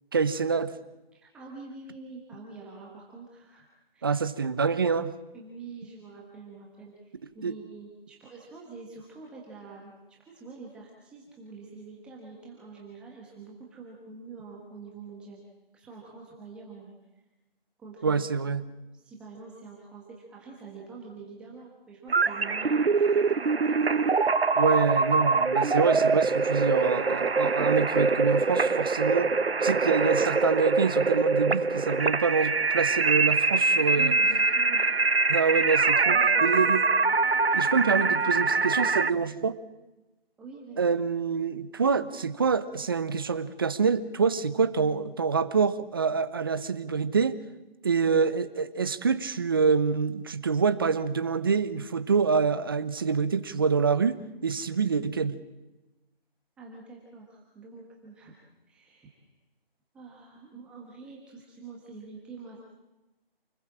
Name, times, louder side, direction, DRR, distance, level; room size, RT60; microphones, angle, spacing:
voice 1, 0.1-0.7 4.0-5.1 7.4-7.5 18.0-18.7 24.6-29.3 29.6-34.1 35.3-36.8 37.5-39.6 40.8-47.4 47.8-55.4, right 5 dB, 25° right, 13 dB, 1.0 m, -26 dB
voice 2, 1.2-3.7 3.9-4.1 5.3-15.4 15.7-16.9 17.8-18.2 18.9-24.0 33.8-35.0 36.1-36.6 40.4-40.9 56.6-58.4 58.7-59.3 59.9-62.6, right 4 dB, 5° right, -3 dB, 1.3 m, -46 dB
sound 1, 22.1-39.1, right 4 dB, 80° right, 1.2 m, -24 dB
29.0 x 20.5 x 7.4 m, 1.0 s
figure-of-eight pair, 165°, 30 cm